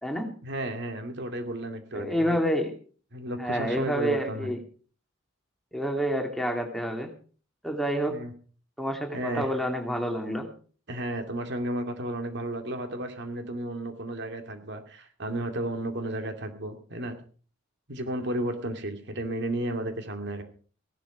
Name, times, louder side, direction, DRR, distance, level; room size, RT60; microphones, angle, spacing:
voice 1, 0.4-2.4 3.1-4.5 8.1-8.3 9.1-9.5 10.9-17.2 17.9-20.4, right 1 dB, 60° right, 6 dB, 2.5 m, -33 dB
voice 2, 1.9-2.7 3.4-4.6 5.7-7.1 7.6-8.2 8.8-10.5, equal, ahead, 3 dB, 2.5 m, -28 dB
17.0 x 12.0 x 5.0 m, 0.41 s
head